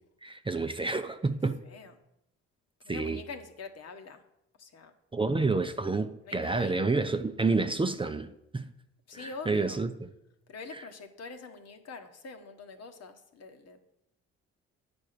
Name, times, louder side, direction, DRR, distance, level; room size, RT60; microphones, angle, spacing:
voice 1, 0.2-1.6 2.9-3.2 5.1-8.7 9.1-9.9, right 3 dB, 15° right, 0.6 m, -29 dB
voice 2, 1.6-1.9 2.8-4.2 4.6-4.9 6.2-6.8 9.1-9.8 10.5-13.8, left 4 dB, 60° left, 1.2 m, -45 dB
9.5 x 4.4 x 6.6 m
supercardioid pair, 65°, 30 cm